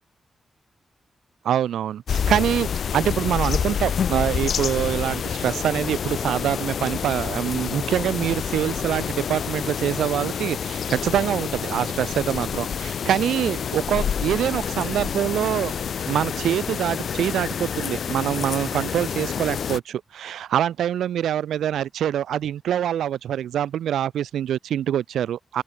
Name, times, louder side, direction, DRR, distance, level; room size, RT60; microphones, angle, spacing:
voice 1, 1.4-2.7 2.9-15.7 16.1-25.6, right 10 dB, 85° right, 3.3 m, -25 dB
sound 1, 2.1-19.8, left 7 dB, 70° left, 5.3 m, -28 dB
open air
supercardioid pair, 40°, 0 cm